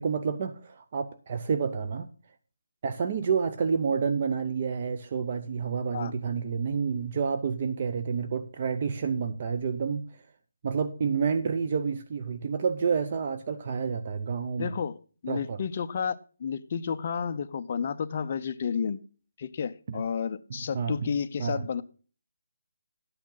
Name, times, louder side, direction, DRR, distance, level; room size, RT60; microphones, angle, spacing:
voice 1, 0.0-2.1 2.8-10.0 10.6-14.7 15.3-15.6 19.9-20.0 20.5-21.1 21.4-21.6, right 6 dB, 30° right, 9 dB, 0.7 m, -29 dB
voice 2, 14.6-19.0 19.4-21.8, left 6 dB, 35° left, 10 dB, 0.6 m, -31 dB
11.5 x 8.9 x 3.8 m, 0.38 s
hypercardioid pair, 170°, 0 cm